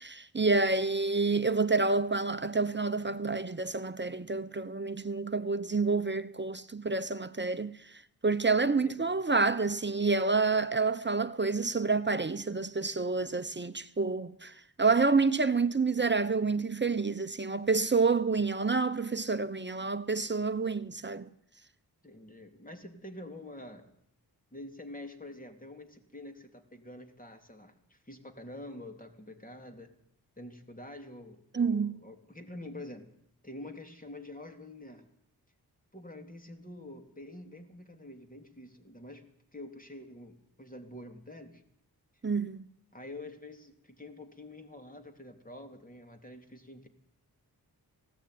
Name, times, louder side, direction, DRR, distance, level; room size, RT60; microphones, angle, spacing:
voice 1, 0.0-21.3 31.5-31.9 42.2-42.7, right 4 dB, 25° right, 1.0 m, -28 dB
voice 2, 22.0-23.9 24.5-29.9 30.4-33.1 33.4-35.1 35.9-39.2 39.5-41.6 42.9-46.9, left 1 dB, 20° left, 3.6 m, -47 dB
20.0 x 17.0 x 9.6 m
cardioid pair, 60°, 39 cm